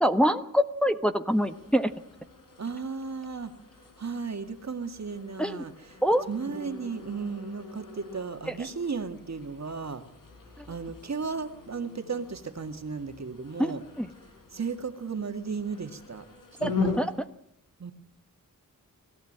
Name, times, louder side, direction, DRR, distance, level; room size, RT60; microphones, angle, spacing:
voice 1, 0.0-1.9 5.4-5.6 6.0-6.2 10.6-10.7 13.6-13.7 14.0-14.1 16.6-16.7 17.0-17.1, equal, 5° left, 7 dB, 1.3 m, -24 dB
sound 1, 1.3-17.3, left 4 dB, 85° left, 4.7 m, -40 dB
voice 2, 2.6-3.5 4.0-6.0 6.3-10.0 10.7-13.8 14.5-16.3 16.6-16.9 17.8-17.9, right 5 dB, 55° right, 7 dB, 2.2 m, -35 dB
22.0 x 14.5 x 8.8 m, 0.72 s
wide cardioid pair, 70°, 32 cm